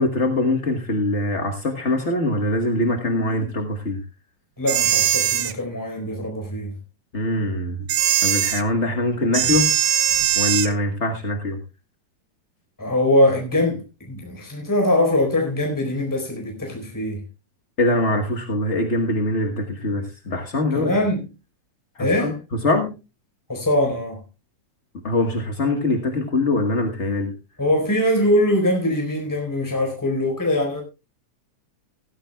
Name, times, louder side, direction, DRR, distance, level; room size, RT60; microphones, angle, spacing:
voice 1, 0.0-4.0 7.1-7.9 8.2-9.7 10.4-11.6 17.8-20.9 22.0-22.3 22.6-22.9 25.0-27.3, left 1 dB, 45° left, 4 dB, 0.9 m, -23 dB
voice 2, 4.6-6.7 12.8-17.2 20.7-21.3 22.0-22.4 23.5-24.2 27.6-30.8, left 1 dB, 5° left, 2 dB, 4.2 m, -22 dB
sound 1, 4.7-5.5 7.9-8.6 9.3-10.7, right 10 dB, 70° right, 1.2 m, -20 dB
16.5 x 14.5 x 2.3 m, 0.28 s
omnidirectional pair, 3.3 m